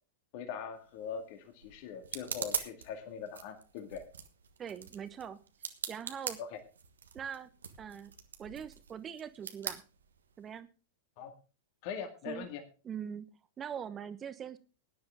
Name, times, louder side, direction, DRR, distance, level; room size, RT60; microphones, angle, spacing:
voice 1, 0.3-4.0 6.4-6.6 11.2-11.3 11.8-12.6, left 7 dB, 50° left, 5 dB, 2.1 m, -42 dB
sound 1, 0.7-10.6, right 7 dB, 75° right, 1.4 m, -43 dB
voice 2, 4.6-5.4 5.9-6.4 7.1-7.5 7.8-8.1 8.4-9.8 10.4-10.7 12.2-12.5 12.8-13.3 13.6-14.6, right 8 dB, 25° right, 13 dB, 1.1 m, -42 dB
17.0 x 10.5 x 3.6 m, 0.35 s
figure-of-eight pair, 95°, 0 cm